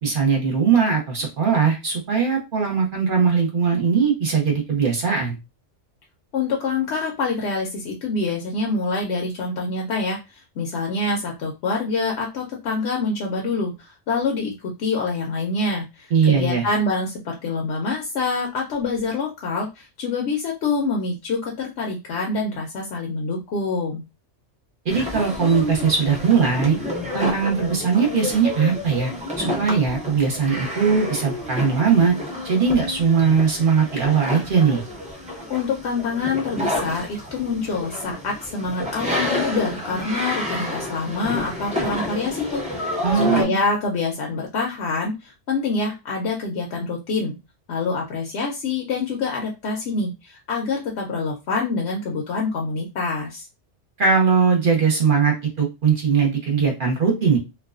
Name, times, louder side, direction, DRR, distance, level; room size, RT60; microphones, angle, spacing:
voice 1, 0.0-5.4 16.1-16.7 24.8-26.8 27.1-29.1 29.4-32.1 32.4-34.8 43.0-43.6 54.0-57.4, right 6 dB, 50° right, 0 dB, 0.8 m, -20 dB
voice 2, 6.3-24.0 35.5-43.0 43.3-47.3 47.7-53.5, left 3 dB, 70° left, -1 dB, 0.8 m, -26 dB
sound 1, 24.9-43.4, left 1 dB, 10° right, 0.5 m, -29 dB
2.4 x 2.2 x 2.3 m, 0.26 s
omnidirectional pair, 1.2 m